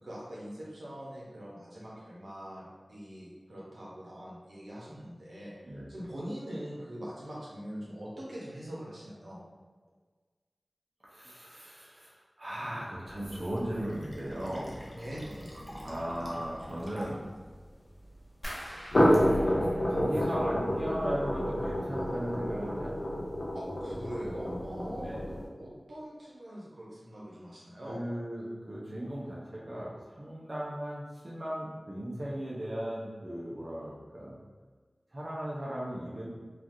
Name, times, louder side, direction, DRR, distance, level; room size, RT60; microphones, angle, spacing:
voice 1, 0.0-9.4 14.9-15.6 19.6-19.7 23.5-28.0, equal, 85° right, -7 dB, 0.8 m, -43 dB
voice 2, 11.0-14.8 15.8-17.3 19.0-19.4 19.8-23.0 25.0-25.3 27.9-34.4 35.1-36.3, equal, 45° right, -6 dB, 0.6 m, -37 dB
sound 1, 13.0-17.6 18.7-25.5, equal, 70° left, 0.5 m, -30 dB
Fill (with liquid), 13.4-17.4, equal, 25° left, 0.6 m, -47 dB
sound 2, 18.4-21.3 21.6-22.3 22.6-23.1 23.5-23.6, equal, 20° right, 1.5 m, -46 dB
3.0 x 2.4 x 2.6 m, 1.4 s
wide cardioid pair, 45°, 0 cm